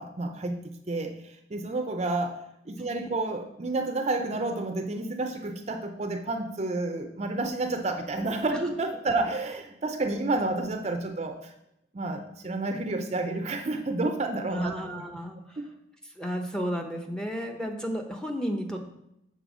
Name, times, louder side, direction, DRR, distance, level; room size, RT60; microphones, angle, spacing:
voice 1, 0.0-2.4 2.7-11.5 11.9-15.0 15.6-15.7, right 2 dB, 35° right, 5 dB, 0.5 m, -30 dB
voice 2, 14.5-15.6 16.2-18.8, equal, 5° left, 2 dB, 0.7 m, -32 dB
6.8 x 4.3 x 6.1 m, 0.82 s
head